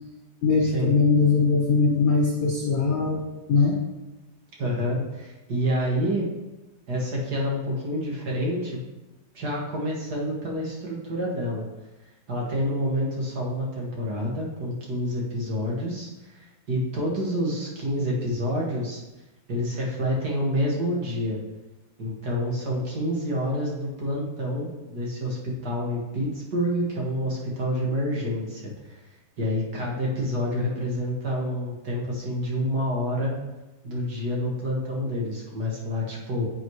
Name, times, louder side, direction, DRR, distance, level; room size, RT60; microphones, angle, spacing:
voice 1, 0.4-3.2 3.5-3.8, left 4 dB, 40° left, -3 dB, 1.5 m, -21 dB
voice 2, 4.6-6.3 6.9-8.8 9.3-11.7 12.3-19.0 19.5-21.4 22.0-29.0 29.4-33.3 33.8-36.5, equal, 65° right, -3 dB, 2.5 m, -28 dB
10.5 x 7.9 x 3.2 m, 1.1 s
omnidirectional pair, 1.8 m